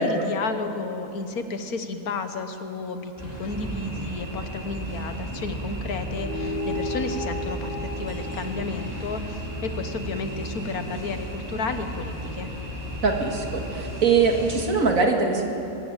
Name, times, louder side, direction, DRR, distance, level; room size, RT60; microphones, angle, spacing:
voice 1, 0.0-12.5, left 3 dB, 75° left, 8 dB, 1.7 m, -32 dB
sound 1, 3.2-14.7, right 1 dB, 10° right, 4.1 m, -34 dB
sound 2, 6.1-10.9, left 1 dB, 40° right, 3.0 m, -35 dB
voice 2, 13.0-15.5, right 4 dB, 65° right, 2 dB, 2.3 m, -22 dB
23.0 x 13.0 x 9.0 m, 3.0 s
omnidirectional pair, 1.6 m